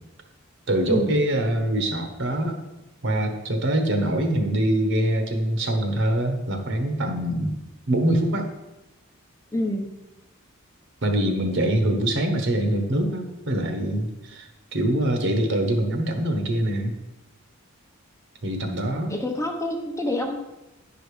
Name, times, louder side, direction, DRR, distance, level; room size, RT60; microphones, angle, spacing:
voice 1, 0.7-2.6 3.0-7.6 7.9-8.5 11.0-16.9 18.4-19.1, right 1 dB, 55° right, 5 dB, 1.1 m, -24 dB
voice 2, 9.5-9.9 19.1-20.4, left 1 dB, 15° left, 2 dB, 0.8 m, -27 dB
10.5 x 5.0 x 4.9 m, 1.0 s
head